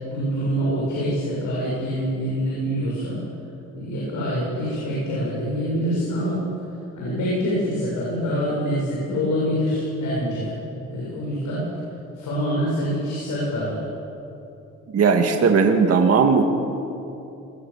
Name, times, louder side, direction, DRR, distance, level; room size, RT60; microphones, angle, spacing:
voice 1, 0.1-3.2 3.7-6.4 6.9-10.5 10.9-11.7 12.1-13.8, equal, 75° left, -6 dB, 7.6 m, -25 dB
voice 2, 14.9-16.4, right 5 dB, 55° right, 4 dB, 2.1 m, -17 dB
22.0 x 21.0 x 7.3 m, 2.8 s
cardioid pair, 90°, 30 cm